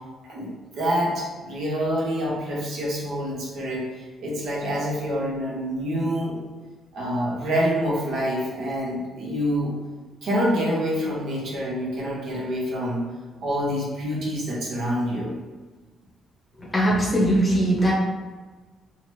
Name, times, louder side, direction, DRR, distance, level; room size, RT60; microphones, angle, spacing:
voice 1, 0.8-6.4 6.9-9.7 10.2-13.0 13.4-15.3, equal, 65° right, -5 dB, 0.9 m, -26 dB
voice 2, 16.7-17.9, right 1 dB, 20° left, -4 dB, 0.8 m, -20 dB
2.9 x 2.1 x 3.3 m, 1.3 s
cardioid pair, 115°, 0 cm